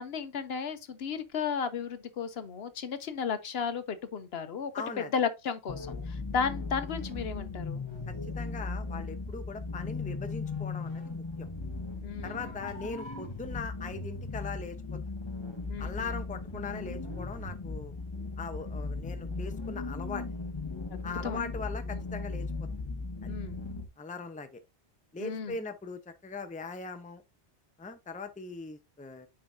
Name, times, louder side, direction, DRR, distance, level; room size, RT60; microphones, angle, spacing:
voice 1, 0.0-4.7 5.0-7.8 12.0-12.4 15.7-16.1 20.9-21.4 23.3-23.6 25.2-25.6, left 6 dB, 65° left, 1.0 m, -34 dB
voice 2, 4.7-5.1 8.1-11.5 12.2-15.0 15.8-17.9 18.4-20.2 21.0-22.5 23.2-23.3 24.0-24.6 25.1-27.2 27.8-29.3, left 4 dB, 10° left, 0.6 m, -40 dB
sound 1, 5.7-23.9, left 3 dB, 25° left, 1.2 m, -37 dB
9.7 x 4.7 x 2.6 m
omnidirectional pair, 1.2 m